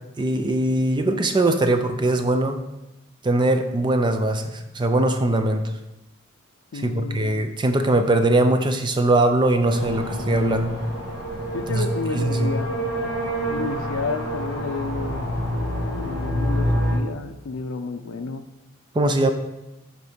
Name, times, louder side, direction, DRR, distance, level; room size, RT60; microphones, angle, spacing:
voice 1, 0.2-2.6 3.2-5.6 6.7-10.7 11.7-11.9 12.1-12.5 18.9-19.3, right 2 dB, 20° right, 7 dB, 0.4 m, -21 dB
voice 2, 6.7-7.3 11.5-13.1 13.5-15.4 16.0-18.4, left 4 dB, 80° left, 7 dB, 0.4 m, -31 dB
sound 1, 9.7-17.0, equal, 55° right, 1.7 m, -27 dB
6.9 x 4.5 x 5.0 m, 0.94 s
head